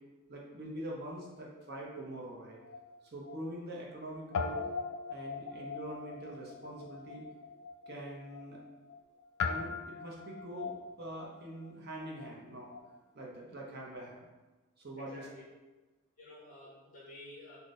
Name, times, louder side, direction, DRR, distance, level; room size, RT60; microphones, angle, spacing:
voice 1, 0.3-2.6 3.1-4.6 5.1-7.3 7.9-8.6 9.4-12.7 13.1-14.3 14.8-15.2, right 1 dB, 45° right, -2 dB, 0.7 m, -44 dB
Guitar, 2.2-4.0 4.3-13.0, left 5 dB, 75° left, 0.3 m, -41 dB
voice 2, 15.0-15.4 16.2-17.6, left 1 dB, 35° left, -7 dB, 1.4 m, -51 dB
4.0 x 2.2 x 3.6 m, 1.2 s
head